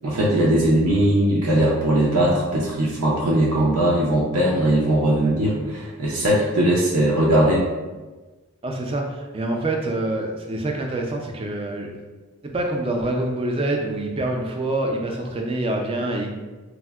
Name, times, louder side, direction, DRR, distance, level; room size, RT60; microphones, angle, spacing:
voice 1, 0.0-7.7, right 1 dB, 85° right, -5 dB, 0.5 m, -19 dB
voice 2, 8.6-11.9 12.4-16.3, right 2 dB, 25° right, 1 dB, 0.3 m, -26 dB
4.2 x 2.0 x 2.2 m, 1.2 s
head